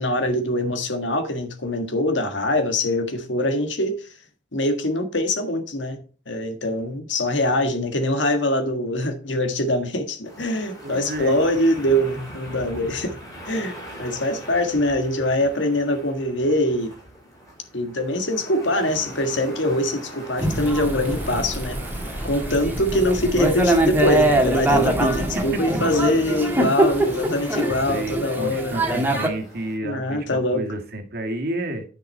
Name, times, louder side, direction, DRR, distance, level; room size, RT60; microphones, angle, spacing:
voice 1, 0.0-4.0 4.5-13.2 13.5-17.0 17.7-21.8 22.2-28.7 29.8-30.6, left 1 dB, 85° left, 1.7 m, -23 dB
sound 1, 10.2-29.8, equal, 20° left, 4.9 m, -42 dB
voice 2, 10.8-11.4 25.4-25.8 27.7-31.9, right 1 dB, 55° right, 1.9 m, -31 dB
Thunder / Rain, 20.4-29.3, right 1 dB, 10° right, 1.7 m, -23 dB
sound 2, 20.5-25.5, right 1 dB, 30° right, 1.0 m, -34 dB
9.9 x 6.0 x 4.4 m
head